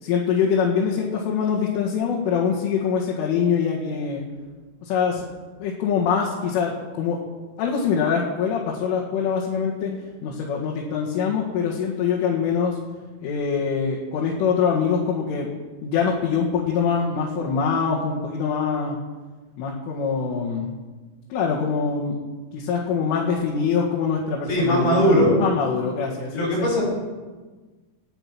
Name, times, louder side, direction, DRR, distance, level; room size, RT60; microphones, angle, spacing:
voice 1, 0.0-4.2 4.8-5.3 5.6-7.2 7.6-10.0 10.2-12.8 13.2-15.5 15.8-19.0 19.6-20.7 21.3-22.2 22.5-26.7, left 6 dB, 85° left, -3 dB, 4.4 m, -24 dB
voice 2, 24.5-25.3 26.3-26.8, equal, 40° left, -3 dB, 7.2 m, -19 dB
19.0 x 12.0 x 6.1 m, 1.3 s
omnidirectional pair, 5.6 m